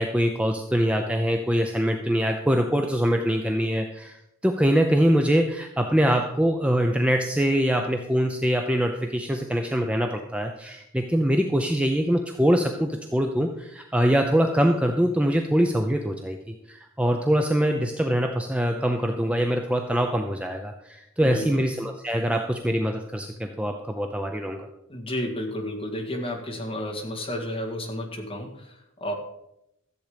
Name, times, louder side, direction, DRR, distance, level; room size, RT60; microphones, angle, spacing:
voice 1, 0.0-4.2 4.4-24.7, equal, 5° right, 3 dB, 0.6 m, -23 dB
voice 2, 21.2-21.6 24.9-29.1, left 1 dB, 25° left, 1 dB, 1.9 m, -32 dB
13.5 x 7.9 x 5.1 m, 0.82 s
head